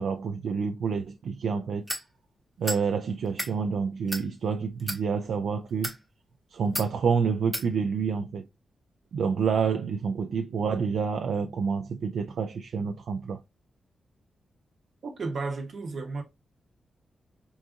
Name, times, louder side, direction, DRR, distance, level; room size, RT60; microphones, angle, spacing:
voice 1, 0.0-1.8 2.6-5.9 6.5-8.4 9.1-13.4, right 6 dB, 70° right, 0.3 m, -28 dB
sound 1, 1.9-2.1 2.6-2.8 3.2-3.5 4.1-4.3 4.8-5.0 5.7-6.0 6.7-6.9 7.5-7.7, equal, 5° right, 0.6 m, -32 dB
voice 2, 15.0-16.2, right 3 dB, 45° right, 0.8 m, -33 dB
3.9 x 2.4 x 2.5 m
wide cardioid pair, 170°, 0 cm